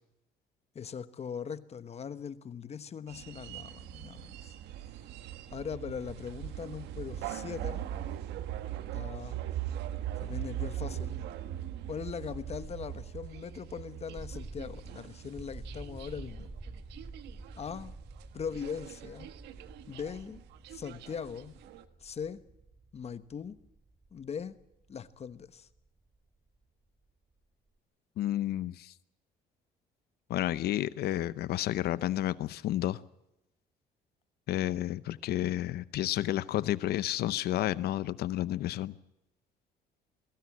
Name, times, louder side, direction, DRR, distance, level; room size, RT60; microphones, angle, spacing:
voice 1, 0.7-4.5 5.5-7.8 8.9-9.5 10.2-11.3 11.9-16.5 17.6-18.0 18.3-19.3 19.9-20.4 20.7-21.5 22.0-22.4 22.9-23.6 24.1-24.6 24.9-25.7, left 7 dB, 40° left, 1.2 m, -40 dB
sound 1, 3.1-17.9 18.2-18.3 18.5-21.8, right 12 dB, 85° right, 1.5 m, -41 dB
sound 2, 12.3-26.5, right 3 dB, 20° right, 2.1 m, -48 dB
voice 2, 28.2-28.9 30.3-33.0 34.5-38.9, left 13 dB, 70° left, 0.8 m, -31 dB
22.0 x 16.5 x 8.7 m
cardioid pair, 110°, 17 cm